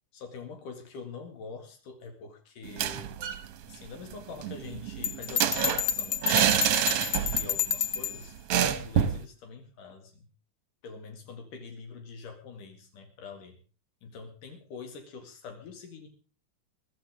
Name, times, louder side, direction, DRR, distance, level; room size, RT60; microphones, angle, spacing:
voice 1, 0.1-3.1 3.7-6.7 7.1-10.3 10.8-13.6 14.0-16.1, left 5 dB, 85° left, 5 dB, 3.7 m, -45 dB
sound 1, 2.6-3.4 3.7-3.8 4.1-7.6 7.8-8.0 8.5-9.2, right 9 dB, 65° right, 1.7 m, -27 dB
Bell, 5.0-8.2, left 8 dB, 60° left, 1.3 m, -30 dB
22.5 x 13.0 x 3.5 m, 0.36 s
omnidirectional pair, 3.6 m